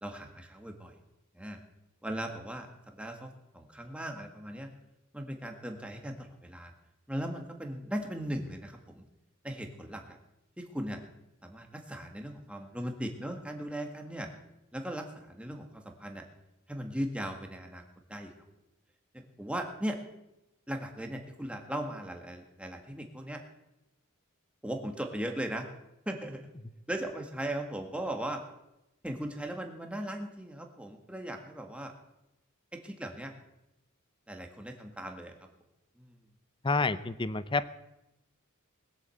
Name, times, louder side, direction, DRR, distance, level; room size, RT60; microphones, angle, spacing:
voice 1, 0.0-0.9 1.3-1.6 2.0-4.7 5.1-6.7 7.1-9.0 9.4-10.2 10.6-11.0 11.4-14.3 14.7-16.2 16.7-17.8 18.1-18.3 19.1-20.0 20.7-23.4 24.6-25.7 26.1-26.5 26.9-28.4 29.0-31.9 32.7-33.3 34.3-35.3 36.0-36.2, right 1 dB, 5° right, 3 dB, 1.8 m, -38 dB
voice 2, 36.6-37.8, left 3 dB, 20° left, 15 dB, 0.6 m, -29 dB
20.5 x 7.8 x 7.8 m, 0.90 s
head